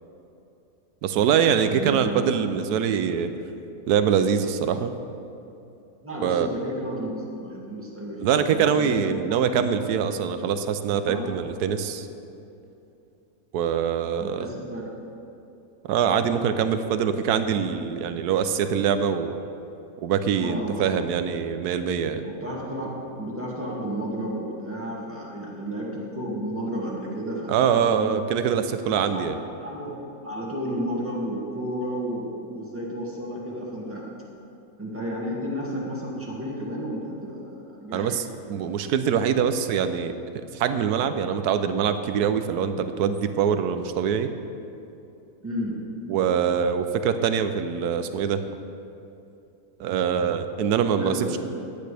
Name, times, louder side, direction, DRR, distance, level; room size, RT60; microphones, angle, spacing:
voice 1, 1.0-3.3 3.9-4.9 6.2-6.5 8.2-12.1 13.5-14.5 15.8-19.3 20.0-22.2 27.5-29.4 37.9-38.2 38.5-40.1 40.5-44.3 46.1-48.4 49.8-51.3, right 7 dB, 90° right, 9 dB, 1.2 m, -24 dB
voice 2, 1.7-2.3 6.0-9.0 9.2-9.4 11.0-11.4 14.2-14.9 20.4-20.9 22.2-28.1 29.1-29.3 29.6-34.1 34.8-38.2 45.4-45.8 51.0-51.4, equal, 10° right, -5 dB, 2.0 m, -32 dB
15.0 x 10.0 x 3.4 m, 2.8 s
omnidirectional pair, 1.6 m